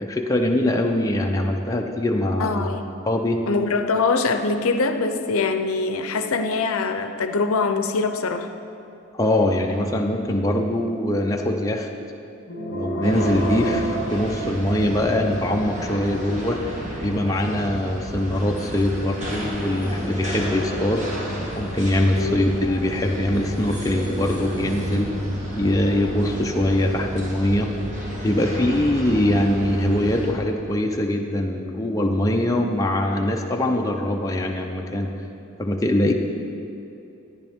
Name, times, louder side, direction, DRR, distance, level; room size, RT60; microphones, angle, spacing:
voice 1, 0.0-2.7 3.1-3.4 9.1-11.9 12.7-16.6 17.0-21.0 21.6-25.1 25.5-27.7 28.2-35.1 35.6-36.1, left 1 dB, 15° left, 1 dB, 0.6 m, -22 dB
voice 2, 2.4-3.0 3.5-8.5 22.2-22.5, left 4 dB, 85° left, 7 dB, 0.6 m, -23 dB
sound 1, 12.5-15.1, right 2 dB, 50° left, 0.8 m, -29 dB
sound 2, 13.0-30.3, equal, 35° right, 1.4 m, -31 dB
13.5 x 10.0 x 3.6 m, 2.8 s
head